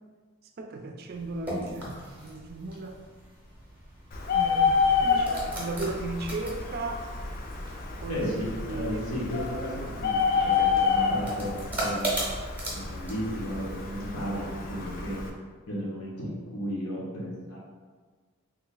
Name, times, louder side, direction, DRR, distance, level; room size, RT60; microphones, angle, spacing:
voice 1, 0.6-3.0 4.3-7.1 8.0-8.2 8.7-9.1 9.9-10.1 10.4-11.1, right 2 dB, 45° right, 4 dB, 0.3 m, -36 dB
sound 1, 1.1-14.2, right 1 dB, 10° right, 0.7 m, -39 dB
Bird, 4.1-15.3, left 5 dB, 40° left, 0.4 m, -29 dB
voice 2, 8.1-12.1 12.7-15.2 15.7-17.6, equal, 85° left, -5 dB, 1.1 m, -34 dB
3.2 x 2.4 x 3.8 m, 1.5 s
head